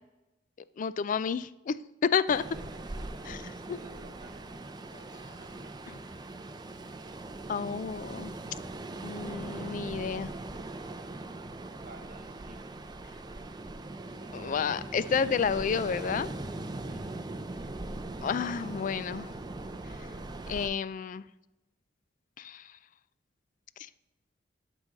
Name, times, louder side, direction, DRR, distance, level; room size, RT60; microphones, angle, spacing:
voice 1, 0.8-1.8 2.0-2.4 3.3-3.8 4.9-5.0 7.5-8.3 9.0-10.3 14.3-16.3 18.2-19.3 20.5-21.3 22.4-22.6, left 6 dB, 45° left, 16 dB, 0.3 m, -30 dB
Ocean, 2.3-20.7, right 2 dB, 25° right, 0.5 m, -40 dB
voice 2, 2.3-2.6 3.0-4.8 5.0-6.0 11.8-12.7 16.8-17.0, right 2 dB, 50° right, 5 dB, 1.1 m, -54 dB
11.0 x 3.9 x 6.3 m, 0.98 s
head